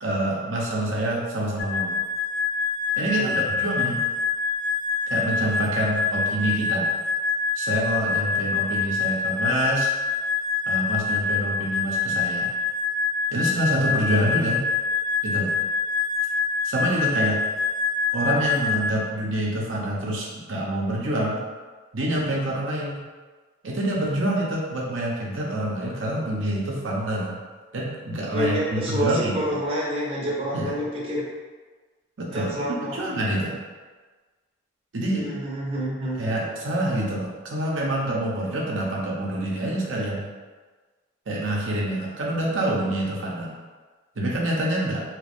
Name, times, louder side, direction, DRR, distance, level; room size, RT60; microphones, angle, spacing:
voice 1, 0.0-2.0 3.0-4.0 5.1-6.9 7.6-9.9 10.7-12.5 13.3-14.6 15.2-15.5 16.6-17.4 18.1-21.4 21.9-23.0 23.6-27.3 27.7-29.4 30.5-30.7 32.2-33.6 34.9-35.3 36.2-40.2 41.3-43.5 44.2-45.0, right 1 dB, 75° right, -4 dB, 0.7 m, -26 dB
sound 1, 1.6-18.9, left 5 dB, 75° left, 0.4 m, -25 dB
voice 2, 28.3-31.3 32.3-33.0 35.1-36.2, right 1 dB, 30° right, -6 dB, 0.7 m, -28 dB
2.9 x 2.5 x 3.4 m, 1.4 s
head